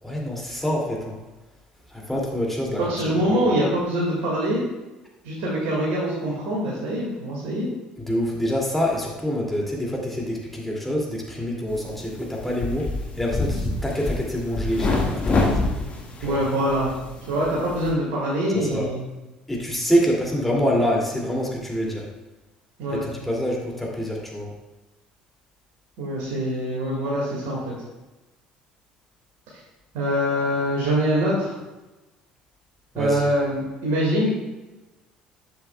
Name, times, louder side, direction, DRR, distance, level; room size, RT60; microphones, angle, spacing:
voice 1, 0.0-1.2 1.9-3.2 8.1-12.9 13.2-15.6 16.3-16.4 18.5-18.9 19.5-22.0 22.9-24.5 32.9-33.3, equal, 5° left, -2 dB, 2.4 m, -26 dB
voice 2, 2.8-4.6 5.2-7.7 16.2-16.9 17.3-19.0 22.8-23.0 26.0-27.6 29.9-31.5 33.0-34.3, equal, 60° right, -5 dB, 1.9 m, -24 dB
sound 1, 11.7-17.9, left 2 dB, 30° left, 1.7 m, -27 dB
10.5 x 7.5 x 2.3 m, 1.1 s
figure-of-eight pair, 55°, 4 cm